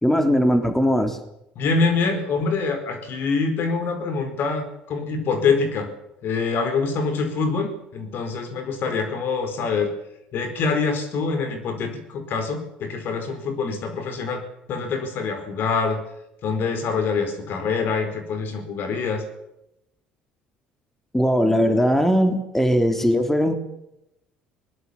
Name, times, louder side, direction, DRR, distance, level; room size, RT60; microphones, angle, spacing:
voice 1, 0.0-1.2 21.1-23.5, equal, 5° left, 7 dB, 3.3 m, -19 dB
voice 2, 1.6-5.9 6.2-9.9 10.3-14.4 14.7-16.0 16.4-19.2, left 4 dB, 55° left, 8 dB, 4.8 m, -25 dB
21.5 x 20.5 x 7.2 m, 0.86 s
hypercardioid pair, 55°, 4 cm